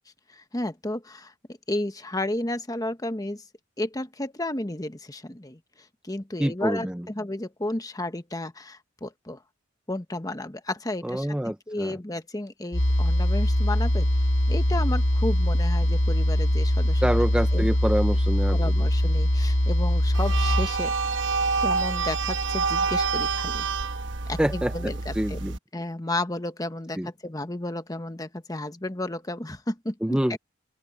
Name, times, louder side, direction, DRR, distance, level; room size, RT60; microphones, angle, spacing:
voice 1, 0.3-3.4 3.8-5.6 6.0-9.4 9.9-14.1 14.5-17.0 17.5-17.7 18.5-20.9 21.6-23.7 24.3-25.4 25.7-30.4, left 1 dB, 20° left, 1.2 m, -32 dB
voice 2, 6.4-7.1 11.0-12.0 17.0-18.9 24.4-25.6 27.0-27.1 30.0-30.4, right 1 dB, 5° right, 0.4 m, -27 dB
sound 1, 12.7-20.7, left 1 dB, 70° left, 2.1 m, -22 dB
sound 2, 20.1-25.6, right 4 dB, 65° right, 1.1 m, -27 dB
head